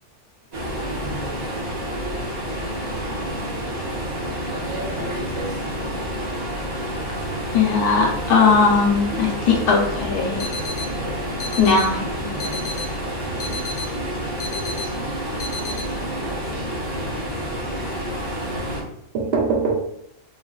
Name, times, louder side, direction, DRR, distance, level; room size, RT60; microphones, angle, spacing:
sound 1, 0.5-18.8, equal, 35° right, 0.9 m, -29 dB
voice 1, 4.4-5.6 12.3-12.6 13.1-13.2 19.1-19.9, right 4 dB, 85° right, 0 dB, 0.5 m, -26 dB
voice 2, 7.5-10.6 11.6-12.3 18.8-18.9, left 5 dB, 90° left, -1 dB, 1.1 m, -19 dB
sound 2, 10.4-10.9 11.4-11.9 12.4-12.9 13.4-13.9 14.4-14.9 15.4-15.8, left 3 dB, 65° left, 0.7 m, -32 dB
voice 3, 13.1-13.7 14.6-15.8 16.2-17.3, right 4 dB, 70° right, -4 dB, 1.4 m, -41 dB
3.5 x 2.4 x 2.3 m, 0.72 s
omnidirectional pair, 1.6 m